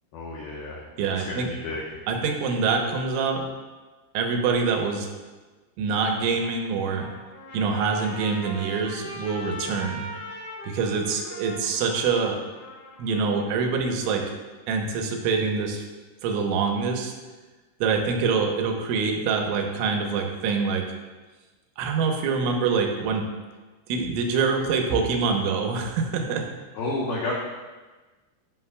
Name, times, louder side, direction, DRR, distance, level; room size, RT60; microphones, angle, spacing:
voice 1, 0.1-0.8 1.1-2.0 26.7-27.3, left 2 dB, 75° left, -5 dB, 2.3 m, -31 dB
voice 2, 1.0-1.5 2.1-3.4 4.1-5.1 5.8-7.1 7.5-10.0 10.6-12.4 13.0-14.3 14.7-15.8 16.2-17.1 17.8-20.9 21.8-23.2 23.9-26.4, right 5 dB, 85° right, 2 dB, 3.4 m, -25 dB
Trumpet, 6.6-14.1, left 1 dB, 35° left, 2.5 m, -41 dB
15.5 x 6.0 x 2.2 m, 1.3 s
omnidirectional pair, 5.4 m